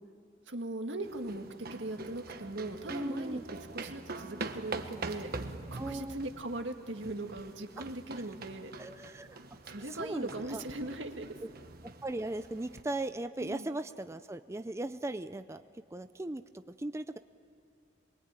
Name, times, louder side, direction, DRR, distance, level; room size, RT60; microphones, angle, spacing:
voice 1, 0.5-3.4 3.7-5.3 5.7-8.7 9.7-11.4 13.4-13.7, right 2 dB, 80° right, 5 dB, 1.9 m, -39 dB
sound 1, 1.0-12.8, right 3 dB, 55° right, 1.3 m, -44 dB
voice 2, 2.9-3.4 5.8-6.2 7.8-7.9 8.8-9.4 9.8-10.6 12.0-15.6 15.9-17.2, right 2 dB, 15° right, 10 dB, 0.5 m, -38 dB
24.0 x 23.0 x 9.0 m, 2.5 s
head